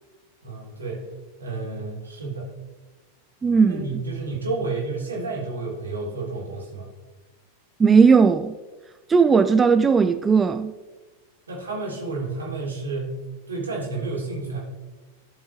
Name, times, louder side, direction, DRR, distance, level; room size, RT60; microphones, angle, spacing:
voice 1, 0.4-1.0 1.4-2.5 3.7-6.9 11.5-13.2 13.5-14.6, right 3 dB, 75° right, 2.8 m, -30 dB
voice 2, 3.4-3.8 7.8-8.5 9.1-10.7, right 5 dB, 15° right, 0.3 m, -17 dB
15.0 x 5.3 x 3.2 m
figure-of-eight pair, 90°, 0 cm